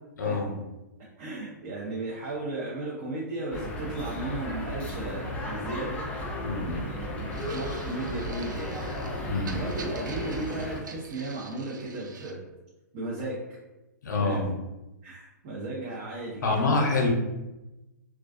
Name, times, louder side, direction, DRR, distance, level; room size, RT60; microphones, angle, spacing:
voice 1, 0.2-0.5 6.4-6.8 9.3-9.6 14.0-14.5 16.4-17.1, left 3 dB, 80° left, 2 dB, 0.6 m, -26 dB
voice 2, 1.2-6.0 6.7-8.9 9.4-12.4 12.9-13.4 14.2-14.4 15.0-16.7, right 2 dB, 40° right, -5 dB, 0.6 m, -35 dB
sound 1, 3.5-10.8, left 1 dB, 15° left, 0.3 m, -34 dB
sound 2, 7.3-12.3, right 5 dB, 85° right, 0.4 m, -46 dB
2.3 x 2.2 x 2.4 m, 1.0 s
hypercardioid pair, 135°, 10 cm